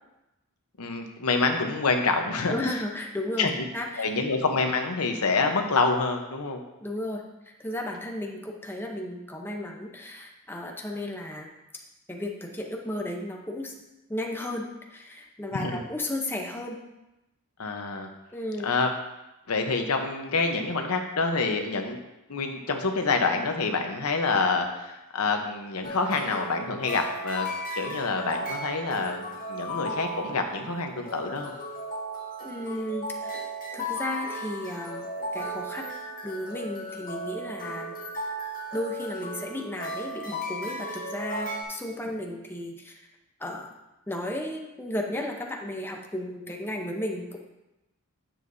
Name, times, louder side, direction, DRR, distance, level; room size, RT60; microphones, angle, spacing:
voice 1, 0.8-2.5 3.4-3.6 4.0-6.6 15.5-15.8 17.6-18.1 18.6-18.9 19.5-22.0 22.3-27.5 27.7-31.5, left 4 dB, 80° left, 4 dB, 0.9 m, -27 dB
voice 2, 2.5-4.3 6.8-7.2 7.6-11.5 12.1-13.7 14.1-16.8 18.3-18.7 32.4-33.5 33.7-37.9 38.7-43.0 43.4-43.7 44.1-47.4, left 1 dB, 10° left, 1 dB, 0.7 m, -34 dB
sound 1, 25.8-41.6, equal, 40° left, 1.4 m, -36 dB
9.5 x 7.4 x 2.7 m, 0.97 s
head